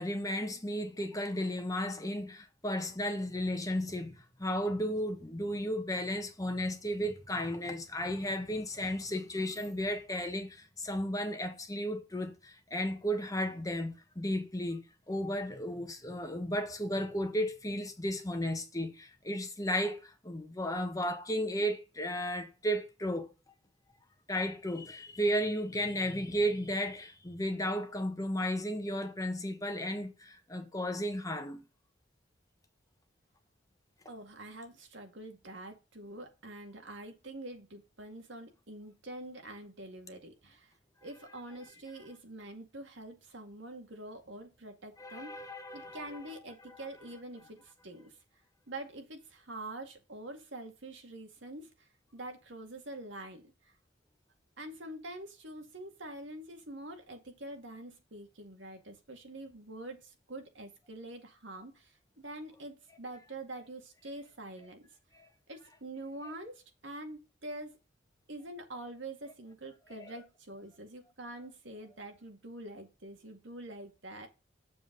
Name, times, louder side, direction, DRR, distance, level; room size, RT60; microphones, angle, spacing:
voice 1, 0.0-23.3 24.3-31.6 45.0-46.2 46.6-46.8 65.1-65.3 69.9-70.1, equal, 20° left, 1.2 m, -34 dB
voice 2, 34.1-40.7 41.0-45.3 45.7-48.1 48.7-53.5 54.6-64.9 65.5-67.8 68.3-74.3, right 1 dB, 70° right, 2.1 m, -45 dB
7.3 x 7.3 x 3.9 m
head